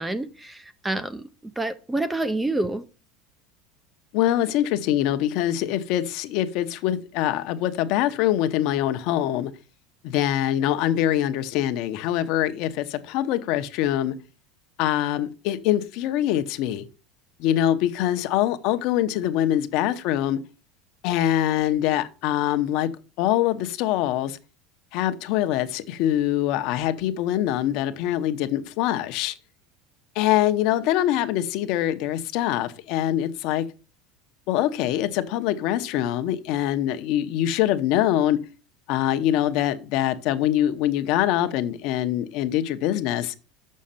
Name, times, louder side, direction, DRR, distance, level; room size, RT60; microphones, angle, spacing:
voice 1, 0.0-2.8, right 2 dB, 5° right, 0.5 m, -28 dB
voice 2, 4.1-9.5 10.0-14.1 14.8-16.9 17.4-20.4 21.0-22.9 23.2-24.4 24.9-29.3 30.1-33.6 34.5-38.4 38.9-43.3, left 12 dB, 55° left, 0.8 m, -24 dB
6.4 x 6.4 x 5.7 m
cardioid pair, 160°, 0 cm